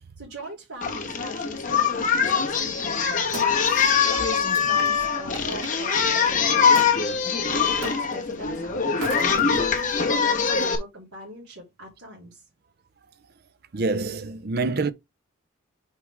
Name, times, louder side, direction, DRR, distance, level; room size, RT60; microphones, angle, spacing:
voice 1, 0.2-3.3 4.1-9.1 9.7-12.5, right 1 dB, 90° right, 3.3 m, -41 dB
Singing, 0.8-10.8, left 6 dB, 35° left, 1.3 m, -23 dB
Wood, 2.8-5.7 6.8-7.0 7.8-8.3 8.9-9.9 10.6-10.7, right 2 dB, 60° right, 1.5 m, -39 dB
voice 2, 13.7-14.9, right 3 dB, 45° right, 0.5 m, -26 dB
6.4 x 4.9 x 3.5 m
head